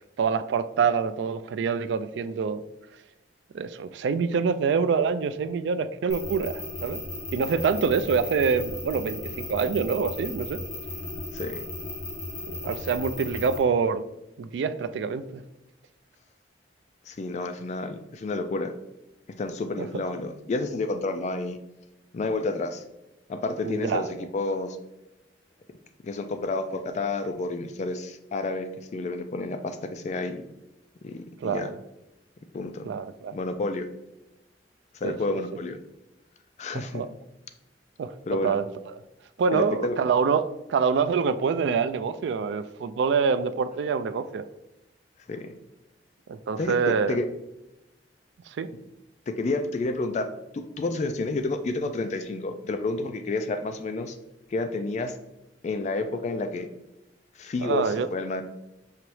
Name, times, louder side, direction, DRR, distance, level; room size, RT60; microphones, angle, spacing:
voice 1, 0.2-2.6 3.5-7.0 7.3-10.6 12.5-14.1 14.4-15.4 19.8-19.9 23.6-24.0 31.4-31.7 32.9-33.4 35.0-35.4 36.7-37.1 38.0-38.9 39.4-44.5 46.3-47.2 48.5-48.7 57.6-58.1, right 5 dB, 75° right, 12 dB, 0.3 m, -26 dB
sound 1, 6.1-13.6, left 2 dB, 65° left, 1.4 m, -36 dB
voice 2, 11.3-11.6 17.1-18.7 19.4-21.6 22.1-22.8 23.3-24.1 24.3-24.8 26.0-30.4 31.0-31.7 32.5-32.9 33.3-33.9 34.9-35.8 36.6-37.0 38.3-38.6 39.5-40.0 45.3-45.5 46.6-47.3 49.3-50.3 50.5-54.2 54.5-55.2 55.6-56.7 57.4-58.4, left 3 dB, 40° left, 8 dB, 0.3 m, -30 dB
5.7 x 3.0 x 3.1 m, 0.93 s
head